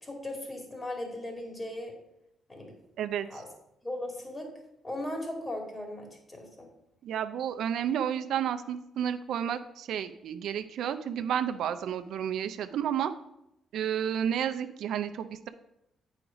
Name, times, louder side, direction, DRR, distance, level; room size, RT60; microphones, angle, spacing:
voice 1, 0.0-2.0 2.5-2.7 3.3-3.5 3.8-4.5 4.8-6.7, left 1 dB, 25° left, 2 dB, 2.4 m, -37 dB
voice 2, 3.0-3.4 7.0-13.1 13.7-15.5, right 9 dB, 75° right, 10 dB, 0.5 m, -31 dB
8.5 x 4.9 x 5.0 m, 0.83 s
cardioid pair, 90°, 0 cm